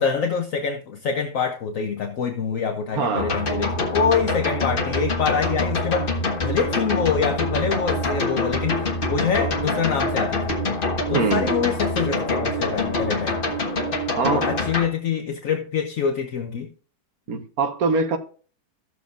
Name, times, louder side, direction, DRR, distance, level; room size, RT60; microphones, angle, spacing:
voice 1, 0.0-6.1 6.4-10.6 11.1-13.6 14.3-16.7, left 6 dB, 60° left, 0.9 m, -25 dB
voice 2, 2.9-3.3 11.1-11.5 14.2-14.5 17.3-18.2, right 4 dB, 50° right, 1.4 m, -23 dB
sound 1, 3.2-14.9, left 2 dB, 30° left, 1.3 m, -25 dB
14.0 x 7.1 x 2.5 m
omnidirectional pair, 2.2 m